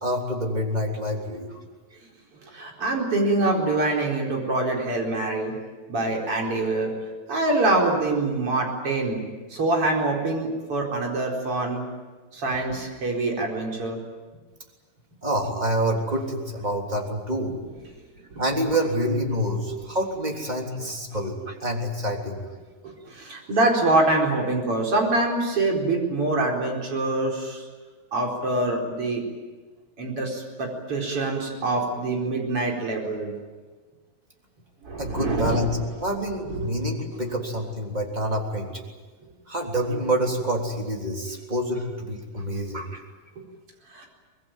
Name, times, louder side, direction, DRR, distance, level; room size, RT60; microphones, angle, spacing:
voice 1, 0.0-1.6 15.2-17.5 18.4-22.4 35.0-35.7 36.0-38.7 39.5-43.0, equal, 10° right, 1 dB, 3.0 m, -27 dB
voice 2, 2.5-5.5 5.9-6.9 7.3-9.2 9.5-11.8 12.3-14.0 18.3-18.4 22.8-27.6 28.1-29.2 30.0-33.3 34.8-35.8 36.5-36.7 43.9-44.1, right 2 dB, 40° right, 0 dB, 5.2 m, -25 dB
25.0 x 20.0 x 9.2 m, 1.3 s
omnidirectional pair, 4.2 m